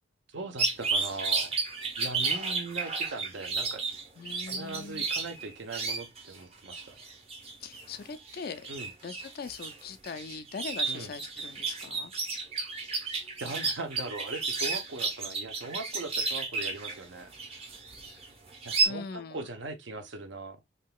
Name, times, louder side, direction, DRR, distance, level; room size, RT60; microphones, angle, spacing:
voice 1, 0.3-1.6 2.0-3.8 4.5-7.0 8.7-8.9 10.9-11.1 13.1-17.3 18.6-20.6, right 3 dB, 65° right, 0.7 m, -40 dB
sound 1, 0.6-6.4 6.7-18.9, right 4 dB, 30° right, 0.7 m, -32 dB
voice 2, 4.2-5.1 7.6-8.7 9.0-12.1 18.2-18.3 18.8-19.5, left 5 dB, 50° left, 0.4 m, -41 dB
3.6 x 2.8 x 2.2 m
head